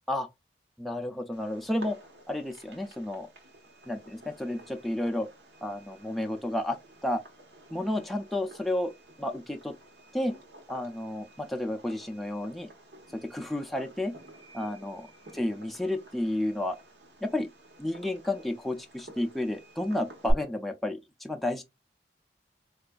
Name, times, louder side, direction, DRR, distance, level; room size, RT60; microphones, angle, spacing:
voice 1, 0.8-2.0 2.3-3.3 3.9-5.3 5.6-6.8 7.0-7.2 7.7-8.9 9.2-9.7 10.1-10.4 10.7-12.7 13.2-14.1 14.5-15.1 15.3-16.8 17.2-17.5 17.8-21.6, left 1 dB, ahead, 0.3 m, -31 dB
Fireworks, 1.3-20.3, equal, 85° right, 1.0 m, -47 dB
4.3 x 2.4 x 2.2 m
head